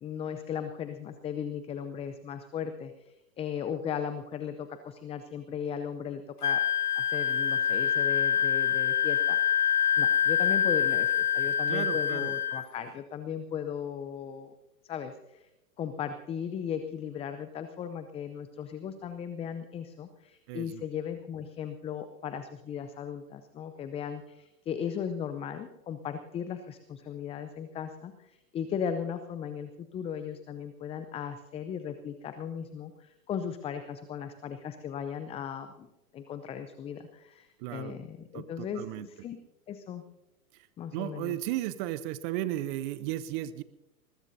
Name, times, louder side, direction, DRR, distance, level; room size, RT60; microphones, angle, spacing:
voice 1, 0.0-6.6 7.0-9.4 10.0-14.6 14.8-15.5 15.8-39.4 39.7-40.0 40.8-41.4, left 8 dB, 15° left, 10 dB, 0.6 m, -37 dB
Wind instrument woodwind instrument, 6.4-12.6, left 9 dB, 85° left, 1.4 m, -26 dB
voice 2, 11.7-12.3 20.5-20.8 37.6-37.9 38.3-39.1 40.5-40.7 40.9-43.6, right 14 dB, 35° right, 15 dB, 0.7 m, -35 dB
20.5 x 20.5 x 2.7 m, 0.96 s
hypercardioid pair, 105°, 45 cm